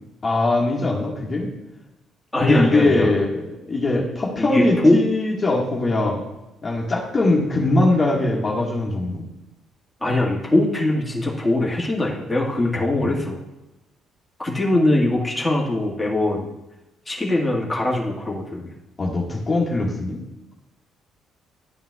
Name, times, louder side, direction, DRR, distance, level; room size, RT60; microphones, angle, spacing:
voice 1, 0.2-1.5 2.4-6.2 6.6-9.2 12.7-13.2 19.0-20.2, left 2 dB, 25° left, -3 dB, 1.6 m, -21 dB
voice 2, 2.3-3.1 4.4-5.0 10.0-13.4 14.4-16.5 17.0-18.7, left 1 dB, 10° left, -4 dB, 1.6 m, -21 dB
11.0 x 9.1 x 2.3 m, 0.97 s
cardioid pair, 140°, 0 cm